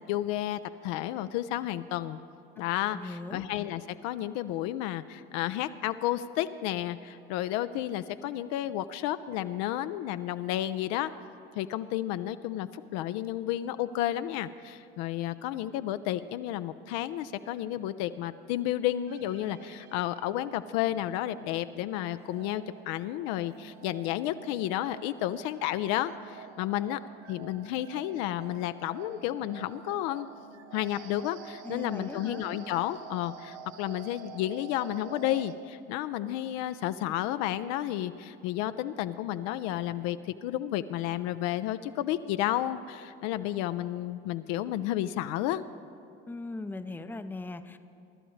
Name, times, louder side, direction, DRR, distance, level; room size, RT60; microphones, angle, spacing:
voice 1, 0.1-2.2 2.6-11.1 11.6-27.0 27.3-30.3 30.7-45.6, left 13 dB, 60° left, 12 dB, 0.5 m, -32 dB
voice 2, 2.6-3.4 31.6-32.4 46.3-47.8, left 2 dB, 5° left, 10 dB, 0.6 m, -39 dB
sound 1, 19.1-35.5, right 8 dB, 55° right, 0.9 m, -49 dB
24.5 x 12.0 x 3.2 m, 2.7 s
hypercardioid pair, 70°, 31 cm